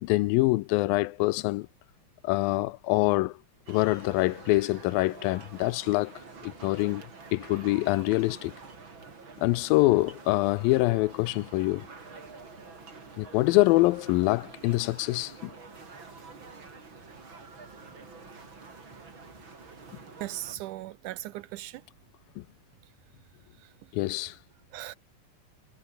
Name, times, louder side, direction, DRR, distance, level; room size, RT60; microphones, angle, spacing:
voice 1, 0.0-1.7 2.2-3.4 3.7-6.1 6.4-7.0 7.3-8.5 9.4-11.9 13.2-15.5 22.4-22.5 23.9-24.4, left 20 dB, 90° left, 2.4 m, -25 dB
sound 1, 3.7-20.6, right 4 dB, 35° right, 4.2 m, -47 dB
voice 2, 20.2-21.8 23.6-23.7 24.1-24.3 24.7-25.0, right 15 dB, 80° right, 1.9 m, -38 dB
omnidirectional pair, 4.1 m